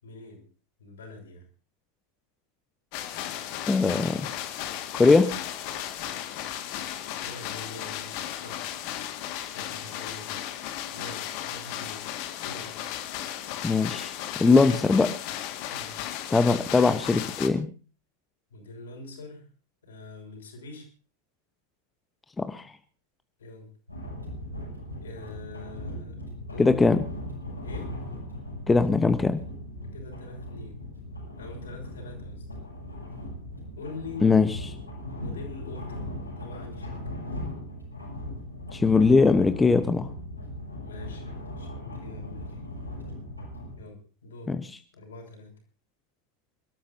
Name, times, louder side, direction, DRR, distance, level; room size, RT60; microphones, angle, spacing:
voice 1, 0.0-0.4 0.8-1.4 7.2-8.7 9.4-10.4 10.9-12.1 12.4-12.7 15.7-16.0 18.5-19.4 19.8-20.9 23.4-23.7 25.0-26.2 26.5-26.8 27.6-27.9 29.9-30.8 31.4-32.4 33.8-34.2 35.2-36.1 36.4-37.0 40.8-41.2 41.6-42.7 43.8-44.6 44.9-45.5, left 3 dB, 65° left, 1 dB, 6.3 m, -44 dB
sound 1, 2.9-17.5, left 11 dB, 45° left, 1.8 m, -35 dB
voice 2, 3.7-4.2 5.0-5.3 13.6-14.1 14.4-15.2 16.3-17.7 22.4-22.7 26.6-27.0 28.7-29.4 34.2-34.7 38.7-40.1 44.5-44.6, left 4 dB, 10° left, 10 dB, 0.9 m, -21 dB
sound 2, 23.9-43.8, left 1 dB, 85° left, 6.9 m, -38 dB
28.5 x 13.0 x 2.7 m, 0.37 s
figure-of-eight pair, 90°, 0 cm